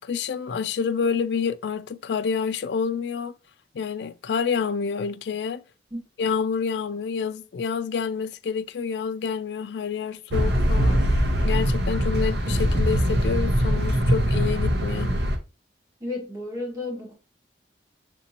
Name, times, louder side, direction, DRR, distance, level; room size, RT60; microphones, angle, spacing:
voice 1, 0.0-3.4 3.7-5.6 6.2-15.1, left 6 dB, 70° left, 0.4 m, -28 dB
sound 1, 10.3-15.4, equal, 65° right, 0.8 m, -22 dB
voice 2, 16.0-17.1, left 2 dB, 20° right, 1.5 m, -32 dB
6.5 x 2.6 x 2.9 m
head